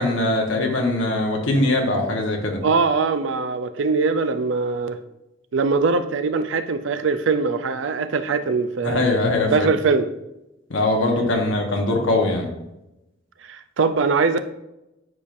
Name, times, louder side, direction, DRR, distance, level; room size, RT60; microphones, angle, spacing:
voice 1, 0.0-2.6 8.8-9.7 10.7-12.5, left 2 dB, 70° left, 1.2 m, -21 dB
voice 2, 2.6-5.0 5.5-9.1 9.5-10.1 13.4-14.5, right 4 dB, 70° right, 0.5 m, -22 dB
9.6 x 4.9 x 2.6 m
head